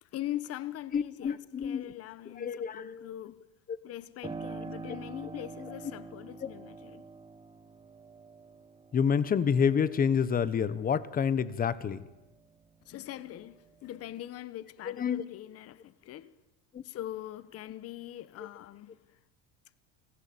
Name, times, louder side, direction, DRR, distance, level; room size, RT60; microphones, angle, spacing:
voice 1, 0.0-3.4 3.8-7.1 12.8-16.3 16.8-19.0, left 13 dB, 45° left, 1.4 m, -42 dB
voice 2, 0.9-1.9 2.4-3.1 6.4-6.5 8.9-12.0 15.0-15.2 16.7-16.8, left 7 dB, 25° left, 1.3 m, -28 dB
Piano, 4.2-12.7 13.1-14.1, right 4 dB, 15° right, 1.6 m, -46 dB
29.0 x 20.0 x 8.8 m
cardioid pair, 140°, 34 cm